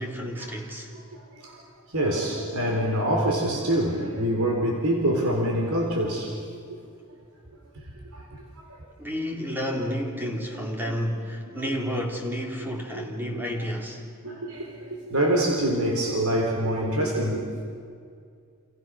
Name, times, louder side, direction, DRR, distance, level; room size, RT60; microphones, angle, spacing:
voice 1, 0.0-0.9 9.0-14.0, equal, 10° right, 0 dB, 3.6 m, -31 dB
voice 2, 0.9-1.6 1.9-6.4 7.7-7.8 8.1-8.3 8.6-8.8 9.5-9.6 10.5-11.1 11.5-11.7 12.9-13.0 14.2-17.6, right 1 dB, 85° right, 0 dB, 4.1 m, -26 dB
29.5 x 28.0 x 6.5 m, 2.2 s
head